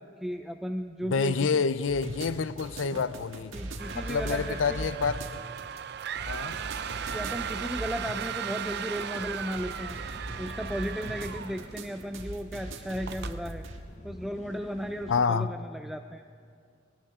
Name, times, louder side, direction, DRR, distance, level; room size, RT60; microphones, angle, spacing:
voice 1, 0.0-1.6 2.9-3.0 3.5-4.8 7.1-10.0 10.4-13.6 14.0-16.2, equal, ahead, 0.4 m, -35 dB
voice 2, 1.1-3.5 4.0-5.2 6.3-6.6 15.1-15.5, left 5 dB, 75° left, 0.5 m, -28 dB
sound 1, 1.9-13.8, right 1 dB, 85° right, 1.6 m, -40 dB
sound 2, 3.8-12.0 12.4-12.6 13.1-13.4, right 8 dB, 60° right, 0.5 m, -37 dB
sound 3, 9.5-15.3, left 1 dB, 40° left, 1.0 m, -49 dB
21.0 x 18.5 x 3.7 m
head